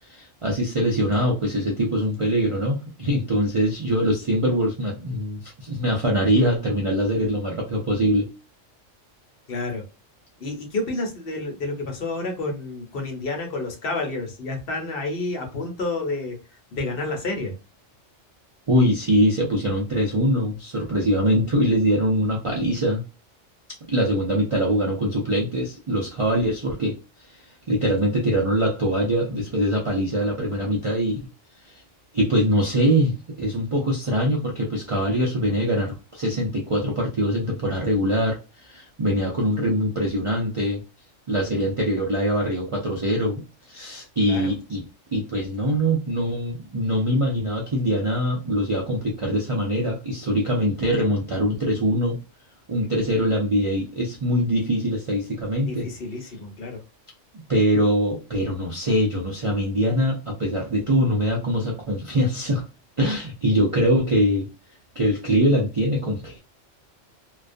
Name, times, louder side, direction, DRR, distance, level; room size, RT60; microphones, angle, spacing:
voice 1, 0.1-8.3 18.7-23.0 23.9-27.0 27.3-27.4 27.7-31.2 31.6-31.8 32.1-40.8 41.3-44.8 45.1-52.2 52.7-55.9 57.3-62.6 63.0-64.5 65.0-66.4, equal, 55° right, -1 dB, 0.3 m, -23 dB
voice 2, 9.5-9.8 10.4-16.4 16.7-17.5 44.3-44.5 55.7-56.8, left 2 dB, 55° left, 3 dB, 0.9 m, -29 dB
2.3 x 2.2 x 2.5 m, 0.30 s
omnidirectional pair, 1.3 m